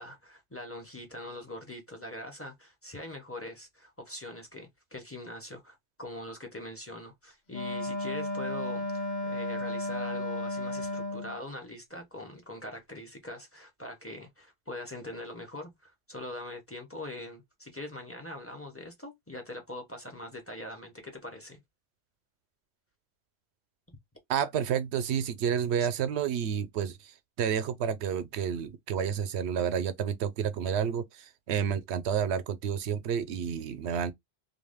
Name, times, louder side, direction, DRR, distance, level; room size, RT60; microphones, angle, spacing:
voice 1, 0.0-21.6 25.8-25.9, left 1 dB, 15° left, 0.6 m, -42 dB
Wind instrument woodwind instrument, 7.5-11.4, left 1 dB, 50° left, 0.8 m, -33 dB
voice 2, 24.3-34.1, right 8 dB, 85° right, 0.8 m, -30 dB
2.5 x 2.3 x 3.4 m
omnidirectional pair, 1.1 m